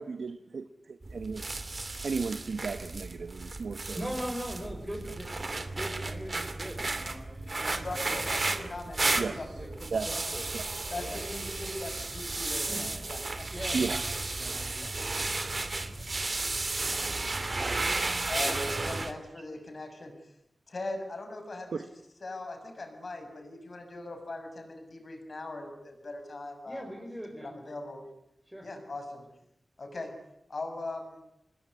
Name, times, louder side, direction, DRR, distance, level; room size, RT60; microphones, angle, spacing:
voice 1, 0.0-1.4 2.0-4.1 9.2-9.4 9.9-10.1 10.5-10.6 13.7-14.0 15.3-16.5 21.7-21.8, right 5 dB, 90° right, 1.1 m, -35 dB
sound 1, 1.0-19.1, right 3 dB, 40° right, 2.5 m, -33 dB
voice 2, 4.0-8.2 8.8-10.4 11.0-11.2 12.7-13.0 13.5-16.3 17.2-17.3 26.7-27.5 28.5-28.7, equal, 5° right, 5.6 m, -42 dB
voice 3, 7.6-9.7 10.9-13.5 14.8-14.9 17.6-20.1 20.7-21.9 22.2-26.8 27.4-28.0 28.6-29.3 29.8-30.1 30.5-31.2, left 2 dB, 55° left, 6.7 m, -40 dB
27.5 x 21.0 x 9.8 m
wide cardioid pair, 105°, 0 cm